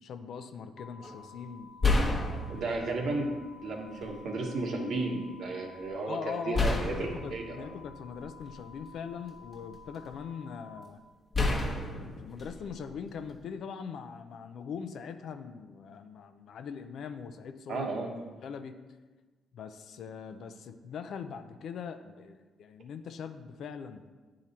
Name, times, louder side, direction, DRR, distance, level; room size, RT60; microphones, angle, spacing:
voice 1, 0.0-1.7 2.0-2.5 6.0-11.0 11.4-17.9 18.4-18.7 19.5-24.0, left 6 dB, 70° left, 9 dB, 0.5 m, -41 dB
sound 1, 0.8-10.8, left 4 dB, 10° left, 0.9 m, -53 dB
sound 2, 1.0-1.2 1.8-3.1 4.0-4.1 6.5-8.7 9.3-10.1 11.3-13.4, left 2 dB, 30° left, 1.1 m, -31 dB
voice 2, 2.5-3.3 3.6-7.7 17.7-18.1, right 2 dB, 65° right, 1 dB, 1.3 m, -33 dB
9.3 x 3.8 x 4.3 m, 1.3 s
cardioid pair, 90°, 0 cm